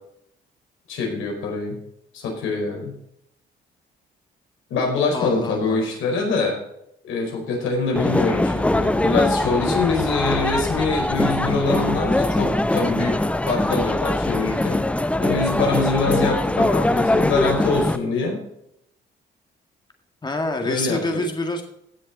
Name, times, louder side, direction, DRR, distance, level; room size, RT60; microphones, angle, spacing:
voice 1, 0.9-1.8 2.1-2.9 4.7-6.6 7.0-13.2 13.5-14.8 15.2-18.4 20.6-21.0, left 4 dB, 85° left, 0 dB, 4.9 m, -24 dB
voice 2, 5.1-5.8 20.2-21.6, left 1 dB, 20° left, 4 dB, 1.9 m, -26 dB
sound 1, 8.0-18.0, left 1 dB, 5° left, 0.5 m, -22 dB
16.5 x 6.7 x 4.2 m, 0.76 s
cardioid pair, 90°, 20 cm